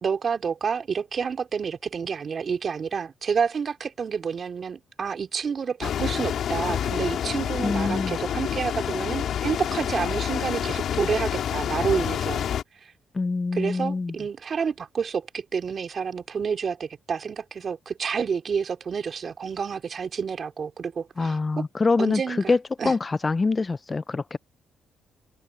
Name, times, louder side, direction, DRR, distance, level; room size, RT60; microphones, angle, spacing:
voice 1, 0.0-12.5 12.8-12.9 13.5-21.7 22.0-22.5 22.8-22.9, right 6 dB, 45° right, 3.4 m, -29 dB
sound 1, 5.8-12.6, left 9 dB, 65° left, 3.2 m, -28 dB
voice 2, 7.6-8.2 13.1-14.1 21.2-24.4, left 3 dB, 25° left, 0.5 m, -25 dB
cardioid pair, 90°, 0 cm